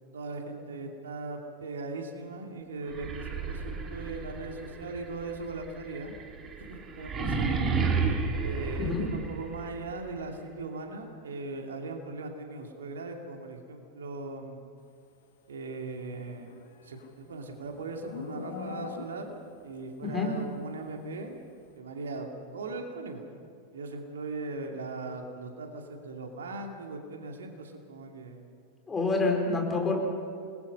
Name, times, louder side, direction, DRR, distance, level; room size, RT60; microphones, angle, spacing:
voice 1, 0.1-6.2 6.6-7.6 8.4-14.6 15.5-16.5 16.8-19.4 19.6-21.4 21.8-23.3 23.7-28.5, right 3 dB, 65° right, 3 dB, 2.5 m, -39 dB
sound 1, 2.9-9.8, right 4 dB, 20° right, 2.6 m, -32 dB
Livestock farm animals working animals, 16.3-19.5, left 7 dB, 60° left, 2.0 m, -43 dB
voice 2, 20.0-20.3 28.9-30.0, left 3 dB, 15° left, 1 dB, 4.5 m, -27 dB
27.5 x 21.0 x 5.5 m, 2.6 s
figure-of-eight pair, 90°, 0 cm